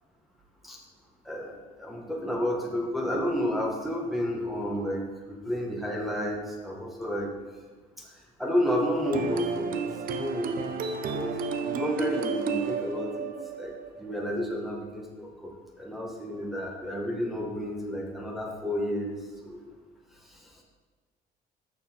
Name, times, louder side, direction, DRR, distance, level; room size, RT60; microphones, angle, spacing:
voice 1, 1.3-7.3 8.4-9.8 10.2-10.9 11.1-11.3 11.6-13.3 13.6-13.7 14.0-15.5 15.8-19.2 19.4-19.6, equal, ahead, -2 dB, 1.4 m, -31 dB
sound 1, 9.0-14.6, right 5 dB, 55° right, 0.6 m, -32 dB
6.5 x 6.2 x 4.4 m, 1.3 s
cardioid pair, 110°, 17 cm